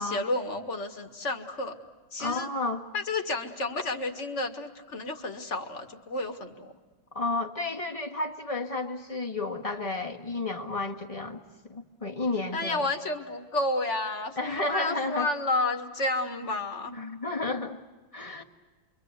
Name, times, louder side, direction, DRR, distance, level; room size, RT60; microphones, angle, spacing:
voice 1, 0.0-1.8 2.1-2.5 2.9-6.7 12.5-16.9, left 2 dB, 40° left, 6 dB, 1.9 m, -31 dB
voice 2, 2.2-2.9 7.1-11.4 11.7-12.9 14.4-15.3 16.9-17.8 18.1-18.4, left 3 dB, 20° left, 2 dB, 1.4 m, -32 dB
28.0 x 24.0 x 8.2 m, 1.2 s
omnidirectional pair, 2.1 m